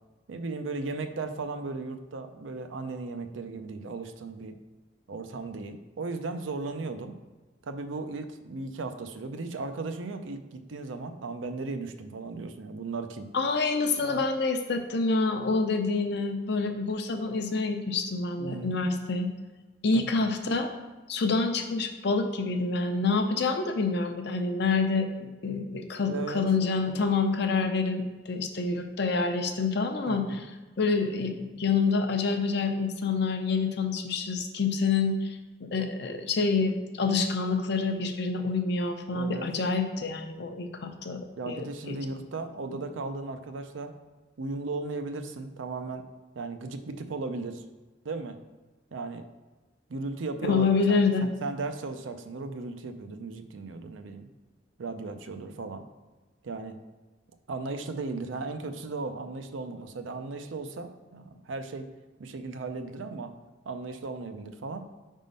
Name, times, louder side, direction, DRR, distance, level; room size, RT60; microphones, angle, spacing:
voice 1, 0.3-4.5 5.1-7.2 7.6-13.3 14.0-14.2 18.4-18.8 19.9-20.0 26.1-26.4 30.1-30.4 39.1-39.5 41.4-43.9 44.4-46.0 46.4-47.6 48.0-48.4 48.9-49.2 49.9-54.3 54.8-55.8 56.4-56.8 57.5-61.9 62.2-63.3 63.7-64.9, right 3 dB, 90° right, 8 dB, 0.5 m, -36 dB
voice 2, 13.3-19.3 19.8-20.7 21.1-30.4 30.8-35.4 35.7-42.0 50.4-51.2, left 4 dB, 60° left, 5 dB, 0.6 m, -27 dB
5.0 x 3.7 x 5.3 m, 1.2 s
head